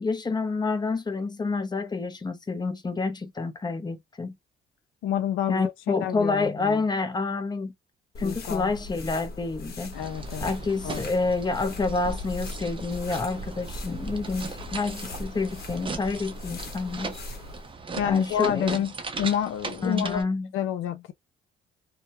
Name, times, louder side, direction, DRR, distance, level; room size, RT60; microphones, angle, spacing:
voice 1, 0.0-4.3 5.5-7.7 8.2-10.0 10.4-17.2 18.0-18.8 19.8-20.5, left 3 dB, 20° left, 0.6 m, -28 dB
voice 2, 5.0-5.7 6.0-6.8 8.2-8.7 9.9-10.5 10.8-11.1 18.0-20.3 20.5-21.1, left 10 dB, 75° left, 0.5 m, -28 dB
sound 1, 8.1-17.7, left 2 dB, 50° left, 1.0 m, -39 dB
sound 2, 9.9-20.2, right 4 dB, 25° right, 0.6 m, -39 dB
2.3 x 2.0 x 2.8 m
supercardioid pair, 70°, 21 cm